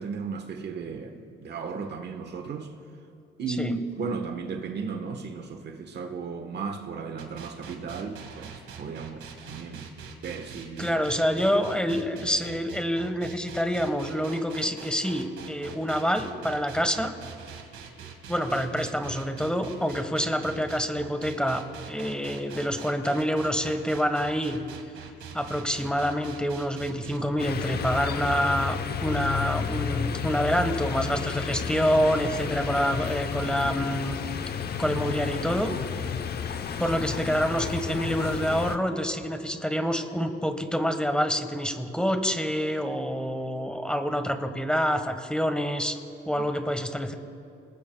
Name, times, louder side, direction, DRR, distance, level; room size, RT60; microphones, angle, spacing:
voice 1, 0.0-2.7 3.4-10.0 10.2-10.9, right 4 dB, 60° right, 1.3 m, -35 dB
sound 1, 7.2-27.2, right 6 dB, 80° right, 1.8 m, -43 dB
voice 2, 10.8-17.1 18.3-24.6 25.3-34.2 34.8-35.7 36.8-46.0 46.3-47.1, equal, 5° left, 1.4 m, -27 dB
sound 2, 27.4-38.8, left 6 dB, 55° left, 0.9 m, -31 dB
28.5 x 19.5 x 2.3 m
cardioid pair, 90°, 20 cm